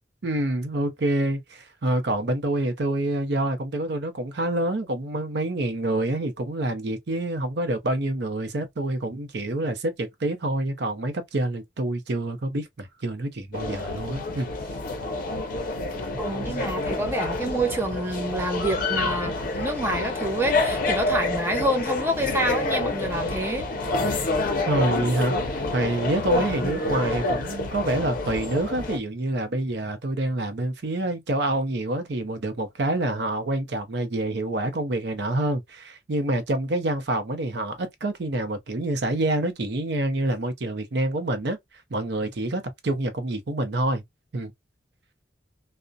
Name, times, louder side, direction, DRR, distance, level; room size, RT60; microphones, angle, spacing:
voice 1, 0.2-14.5 24.7-41.6 41.9-44.0 44.3-44.5, right 1 dB, 60° right, 0.6 m, -27 dB
sound 1, 13.5-29.0, left 2 dB, 50° left, 0.5 m, -28 dB
voice 2, 16.2-23.7, right 1 dB, 15° right, 0.5 m, -27 dB
2.4 x 2.0 x 2.5 m
head